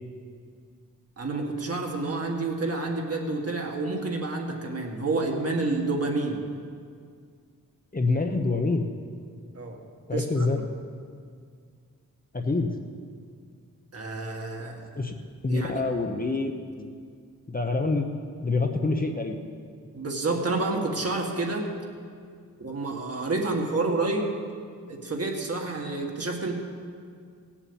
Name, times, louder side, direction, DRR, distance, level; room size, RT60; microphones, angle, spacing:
voice 1, 1.2-6.4 9.5-9.8 10.1-10.5 13.9-14.8 15.5-15.8 19.9-21.7 22.6-24.3 24.9-26.5, right 3 dB, 45° right, 1 dB, 1.9 m, -29 dB
voice 2, 7.9-8.9 10.1-10.6 12.3-12.7 14.9-15.1 15.4-16.5 16.8-16.9 17.5-18.0 18.4-19.4, left 3 dB, 25° left, 4 dB, 1.0 m, -26 dB
17.0 x 7.3 x 8.8 m, 2.2 s
wide cardioid pair, 110°, 34 cm